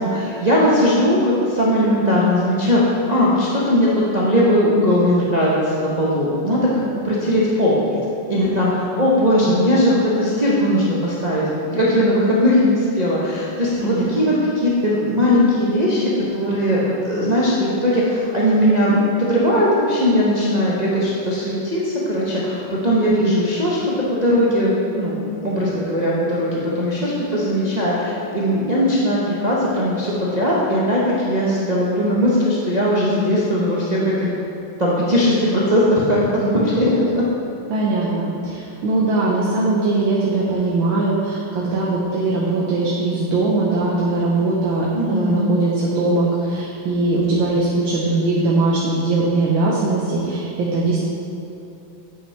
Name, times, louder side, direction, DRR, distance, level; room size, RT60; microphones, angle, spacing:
voice 1, 0.0-7.8 8.3-11.4 11.7-34.3 34.8-37.2 44.9-45.5, equal, 50° right, -7 dB, 0.5 m, -19 dB
voice 2, 13.8-14.3 37.7-51.0, right 2 dB, 75° right, -5 dB, 1.6 m, -20 dB
9.1 x 5.6 x 3.3 m, 2.8 s
omnidirectional pair, 2.2 m